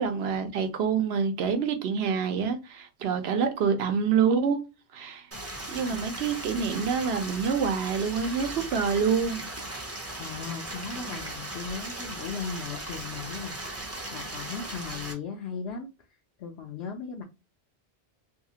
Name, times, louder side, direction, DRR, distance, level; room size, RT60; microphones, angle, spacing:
voice 1, 0.0-4.6 4.9-5.3 5.7-9.5, right 6 dB, 70° right, 0.9 m, -26 dB
Stream, 5.3-15.1, right 1 dB, 20° right, 0.5 m, -38 dB
voice 2, 10.2-15.9 16.4-17.2, left 5 dB, 75° left, 0.8 m, -37 dB
2.7 x 2.4 x 2.7 m
omnidirectional pair, 1.1 m